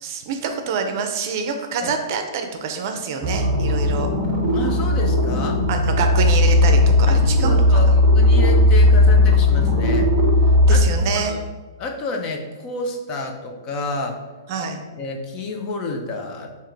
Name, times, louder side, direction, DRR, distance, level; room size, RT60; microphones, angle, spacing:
voice 1, 0.0-4.1 5.7-8.0 10.7-11.3 14.5-14.8, right 5 dB, 50° right, 6 dB, 0.5 m, -26 dB
sound 1, 3.2-10.8, left 1 dB, 20° right, 0.9 m, -16 dB
voice 2, 4.5-5.6 7.1-10.1 10.7-11.4 11.8-14.2 14.6-14.7 15.0-16.5, left 3 dB, 30° left, 3 dB, 0.6 m, -30 dB
3.7 x 2.9 x 4.5 m, 1.3 s
hypercardioid pair, 140°, 2 cm